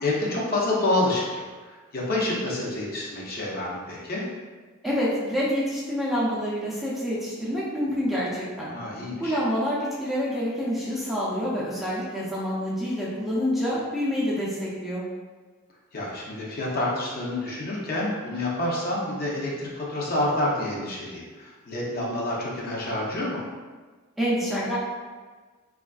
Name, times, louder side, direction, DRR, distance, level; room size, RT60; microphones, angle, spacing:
voice 1, 0.0-1.4 1.9-4.2 8.7-9.4 15.9-23.4, left 1 dB, 45° left, -4 dB, 0.6 m, -28 dB
voice 2, 4.8-8.7 9.2-15.0 24.2-24.8, equal, ahead, -8 dB, 0.4 m, -27 dB
3.3 x 2.4 x 2.3 m, 1.4 s
head